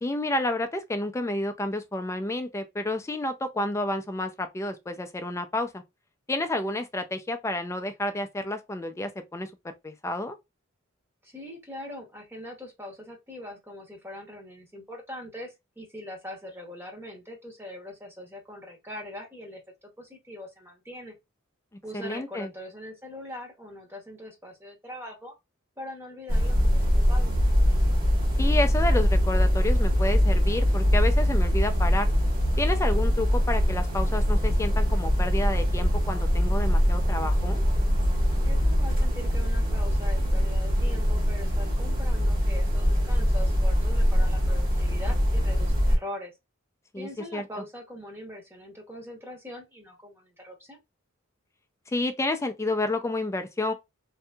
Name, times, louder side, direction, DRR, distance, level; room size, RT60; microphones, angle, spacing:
voice 1, 0.0-5.8 6.3-10.4 21.9-22.5 28.4-32.1 32.6-37.6 46.9-47.4 51.9-53.7, left 1 dB, 15° left, 0.3 m, -30 dB
voice 2, 11.2-21.2 21.8-25.3 25.8-27.4 38.4-46.3 47.0-50.8, left 1 dB, 10° right, 0.8 m, -42 dB
sound 1, 26.3-46.0, equal, 45° right, 1.2 m, -23 dB
2.6 x 2.6 x 2.2 m
head